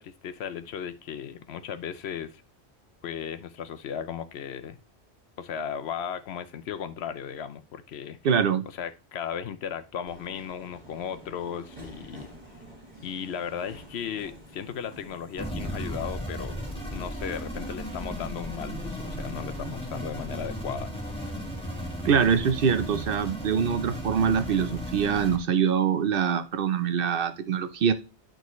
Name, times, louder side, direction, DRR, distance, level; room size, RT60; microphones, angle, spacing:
voice 1, 0.0-2.4 3.0-4.8 5.4-8.2 8.7-12.3 13.0-16.6 16.9-20.9, left 8 dB, 75° left, 12 dB, 0.9 m, -36 dB
voice 2, 8.2-8.6 22.0-27.9, right 7 dB, 60° right, 11 dB, 0.7 m, -24 dB
Subway metro underground, 10.1-18.0, right 1 dB, 35° right, 2.0 m, -48 dB
sound 1, 15.4-25.4, equal, 5° left, 1.8 m, -35 dB
10.5 x 3.8 x 3.1 m, 0.30 s
omnidirectional pair, 1.1 m